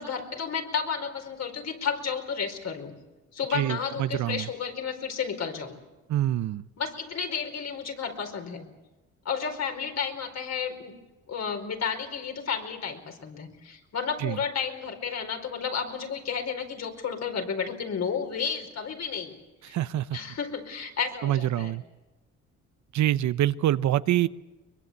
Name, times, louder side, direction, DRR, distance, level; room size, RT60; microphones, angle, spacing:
voice 1, 0.0-2.9 3.3-5.7 6.8-8.6 9.2-10.9 11.3-19.3 19.7-19.8 20.1-21.8, left 6 dB, 60° left, 4 dB, 4.7 m, -32 dB
voice 2, 3.5-4.5 6.1-6.6 14.2-14.4 19.6-20.2 21.2-21.8 22.9-24.3, right 13 dB, 70° right, 15 dB, 0.8 m, -26 dB
23.0 x 22.5 x 8.2 m, 1.1 s
cardioid pair, 90°, 30 cm